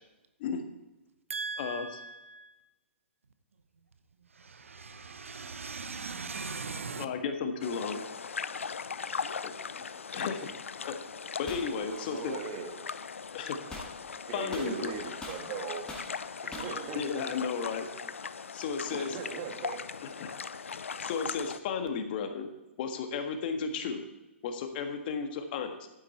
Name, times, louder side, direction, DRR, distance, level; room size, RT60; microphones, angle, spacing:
voice 1, 1.3-2.6 4.2-7.1, right 4 dB, 85° right, 0.8 m, -39 dB
voice 2, 6.9-8.0 9.4-9.5 9.8-9.9 10.1-10.5 10.9-11.0 11.4-12.3 13.3-13.6 14.3-14.9 16.9-17.9 18.5-19.2 20.2-20.3 21.0-22.5 22.8-24.1 24.4-25.9, left 6 dB, 50° left, 1.6 m, -33 dB
sound 1, 7.6-21.6, left 5 dB, 80° left, 0.6 m, -39 dB
sound 2, 11.5-11.7 13.7-13.9 14.5-15.5 15.9-16.1 16.5-16.8, left 2 dB, 10° left, 2.3 m, -42 dB
voice 3, 11.8-12.7 14.1-15.8 16.4-17.2 18.9-19.8, right 6 dB, 40° right, 2.2 m, -40 dB
12.0 x 9.0 x 4.3 m
hypercardioid pair, 125°, 7 cm